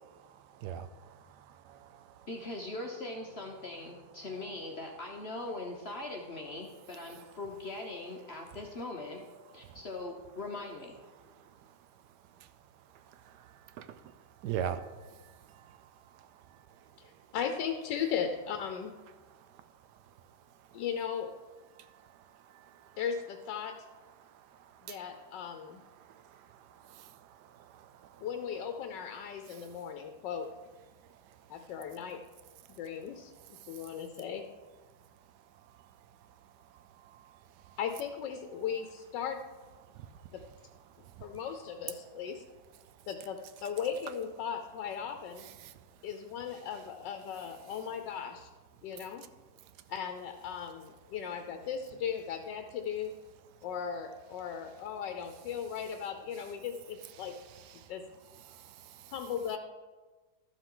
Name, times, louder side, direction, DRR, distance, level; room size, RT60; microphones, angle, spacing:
voice 1, 1.7-2.0 13.3-13.4 13.8-14.0 14.4-14.9 26.9-27.1 27.7-27.9 45.6-45.7 58.5-59.0, right 9 dB, 75° right, 12 dB, 1.1 m, -38 dB
voice 2, 2.3-9.3 9.5-11.0, left 2 dB, 50° left, 1 dB, 0.8 m, -41 dB
voice 3, 17.0-18.9 20.7-21.3 23.0-23.7 24.8-25.8 28.2-30.5 31.5-32.2 32.8-34.4 37.8-39.4 40.3-40.4 41.2-42.4 43.1-45.5 46.0-48.5 48.8-49.2 49.9-53.1 53.6-57.3 57.9-58.0 59.1-59.6, left 7 dB, 80° left, 6 dB, 1.3 m, -37 dB
12.5 x 7.1 x 3.8 m, 1.3 s
omnidirectional pair, 1.9 m